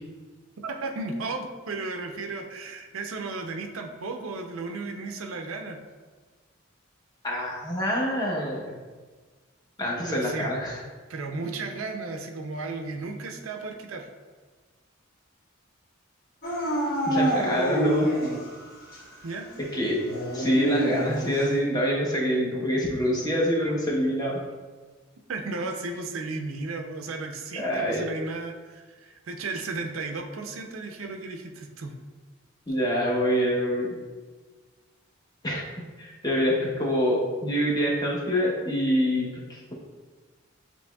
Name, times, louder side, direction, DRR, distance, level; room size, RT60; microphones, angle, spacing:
voice 1, 0.6-5.8 10.1-10.5 11.1-14.1 19.2-19.5 25.3-31.9, right 3 dB, 80° right, 4 dB, 0.5 m, -34 dB
voice 2, 7.2-8.8 9.8-10.9 17.0-18.1 19.7-20.0 20.3-24.4 27.5-28.1 32.7-33.9 35.4-35.6 36.0-39.7, equal, 20° left, -3 dB, 0.9 m, -26 dB
Dog / Siren, 16.4-18.6 18.9-19.0 20.0-21.5, right 1 dB, 50° left, 1.1 m, -27 dB
7.8 x 3.0 x 2.3 m, 1.4 s
head